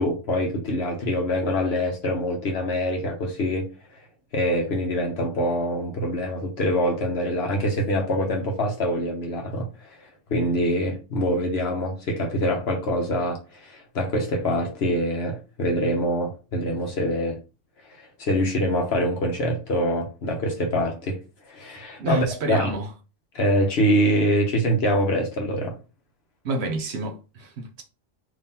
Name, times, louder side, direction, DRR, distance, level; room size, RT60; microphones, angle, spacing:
voice 1, 0.0-3.7 4.3-9.9 10.3-17.4 18.0-21.2 21.5-22.7 23.3-25.7, equal, 55° left, 1.0 m, -24 dB
voice 2, 22.0-22.9 26.4-27.8, right 2 dB, 65° right, 0.8 m, -29 dB
3.6 x 2.9 x 2.7 m
omnidirectional pair, 1.3 m